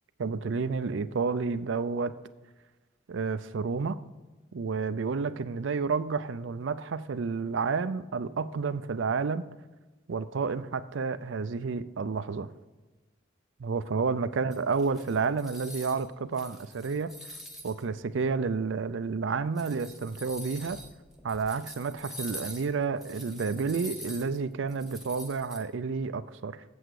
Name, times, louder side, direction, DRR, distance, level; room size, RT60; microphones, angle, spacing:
voice 1, 0.2-2.1 3.1-4.0 4.5-9.5 10.1-12.5 13.6-17.2 17.6-20.8 21.2-26.6, right 5 dB, 70° right, 12 dB, 0.5 m, -30 dB
sound 1, 14.5-16.1 16.3-17.8 18.5-18.6 19.4-25.6, equal, ahead, 1.2 m, -45 dB
8.0 x 7.7 x 4.7 m, 1.2 s
head